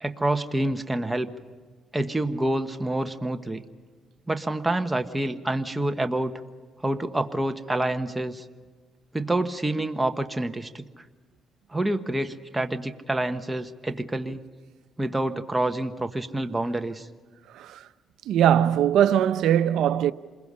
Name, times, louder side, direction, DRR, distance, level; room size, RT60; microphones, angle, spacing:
voice 1, 0.0-1.3 1.9-3.6 4.3-6.3 6.8-8.4 9.1-11.0 11.7-14.4 15.0-17.1, right 1 dB, 10° right, 1.3 m, -27 dB
voice 2, 17.5-17.9 18.3-20.1, right 10 dB, 80° right, 0.7 m, -21 dB
27.5 x 21.5 x 5.6 m
cardioid pair, 90°, 0 cm